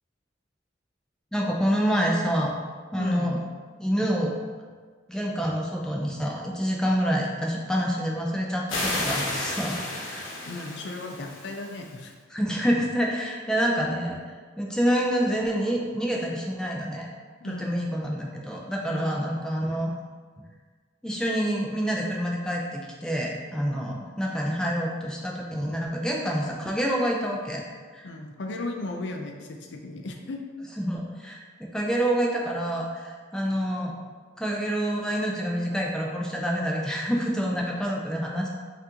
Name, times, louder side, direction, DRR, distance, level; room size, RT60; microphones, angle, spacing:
voice 1, 1.3-2.5 2.9-3.4 3.8-4.3 5.1-10.3 12.3-17.1 17.4-19.9 21.0-27.6 27.9-28.1 30.8-33.9 34.4-38.5, equal, 5° left, -2 dB, 0.4 m, -27 dB
voice 2, 3.0-3.3 10.5-12.1 17.4-17.8 18.9-19.2 28.0-30.4, left 2 dB, 65° left, 3 dB, 0.4 m, -35 dB
sound 1, 8.7-12.0, left 2 dB, 85° left, 0.8 m, -32 dB
5.8 x 2.5 x 2.8 m, 1.5 s
head